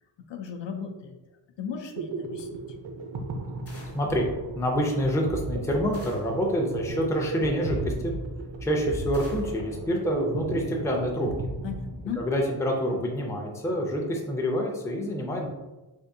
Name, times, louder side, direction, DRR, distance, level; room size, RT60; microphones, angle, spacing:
voice 1, 0.3-1.1 1.6-2.6 11.6-12.2, left 6 dB, 75° left, 4 dB, 0.5 m, -36 dB
sound 1, 1.7-12.5, right 3 dB, 80° right, 0.6 m, -35 dB
sound 2, 3.7-4.2 5.9-6.5 9.1-9.6, left 2 dB, 30° left, 0.7 m, -49 dB
voice 2, 3.9-4.3 4.5-8.1 8.6-11.3 12.2-15.5, equal, 5° left, 0 dB, 0.4 m, -27 dB
3.5 x 2.6 x 2.7 m, 1.1 s
wide cardioid pair, 140°, 44 cm